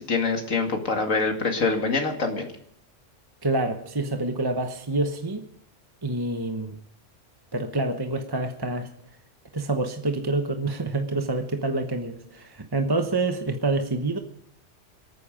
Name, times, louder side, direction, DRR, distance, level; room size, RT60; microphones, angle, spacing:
voice 1, 0.0-2.5, left 4 dB, 85° left, 3 dB, 2.5 m, -25 dB
voice 2, 3.4-5.5 6.0-6.8 7.5-8.9 9.5-14.2, right 2 dB, 20° right, 6 dB, 1.0 m, -27 dB
26.0 x 9.5 x 5.1 m, 0.67 s
omnidirectional pair, 1.3 m